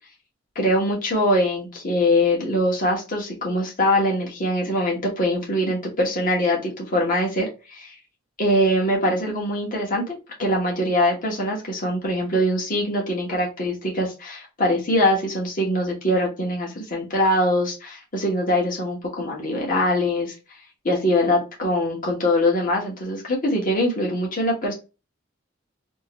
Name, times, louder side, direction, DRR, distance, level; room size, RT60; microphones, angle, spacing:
voice 1, 0.5-7.9 8.4-10.1 10.4-20.3 20.8-24.7, left 1 dB, 45° left, -2 dB, 1.3 m, -23 dB
3.0 x 2.9 x 3.0 m, 0.30 s
head